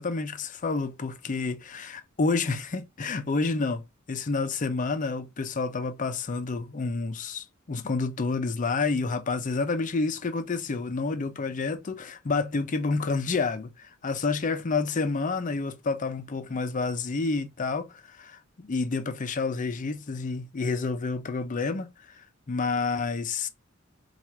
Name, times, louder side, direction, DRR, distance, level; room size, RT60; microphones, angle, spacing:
voice 1, 0.0-22.2 22.5-23.5, left 4 dB, 40° left, 0.5 m, -29 dB
4.4 x 2.4 x 3.3 m
head